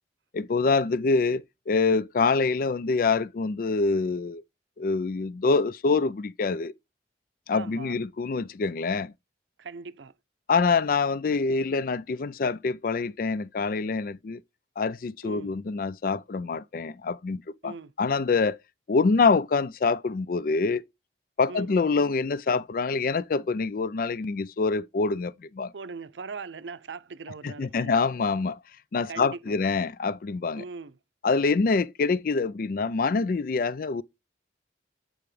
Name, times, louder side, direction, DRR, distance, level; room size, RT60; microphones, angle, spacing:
voice 1, 0.3-4.4 4.8-6.7 7.5-9.1 10.5-14.4 14.8-18.6 18.9-20.8 21.4-25.7 27.4-28.6 28.9-30.6 31.2-34.0, left 4 dB, 50° left, 0.4 m, -25 dB
voice 2, 7.5-8.0 9.6-10.1 15.2-15.5 17.6-17.9 21.5-21.7 25.7-28.0 29.1-29.6 30.6-31.0, right 4 dB, 85° right, 0.6 m, -40 dB
8.8 x 4.8 x 3.2 m
head